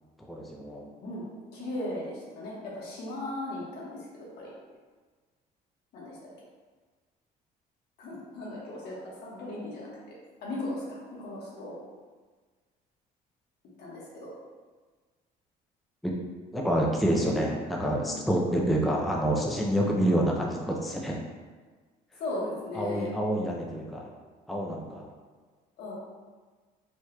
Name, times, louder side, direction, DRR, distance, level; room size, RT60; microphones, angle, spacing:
voice 1, 0.3-0.9 16.0-16.1 16.5-21.2 22.7-24.1 24.5-25.1, right 1 dB, ahead, -2 dB, 0.4 m, -27 dB
voice 2, 1.5-4.5 5.9-6.3 8.0-9.9 10.4-11.7 13.8-14.3 18.0-18.2 22.2-23.1 25.8-25.9, left 1 dB, 75° left, -6 dB, 1.3 m, -37 dB
4.5 x 2.9 x 2.2 m, 1.4 s
cardioid pair, 110°, 17 cm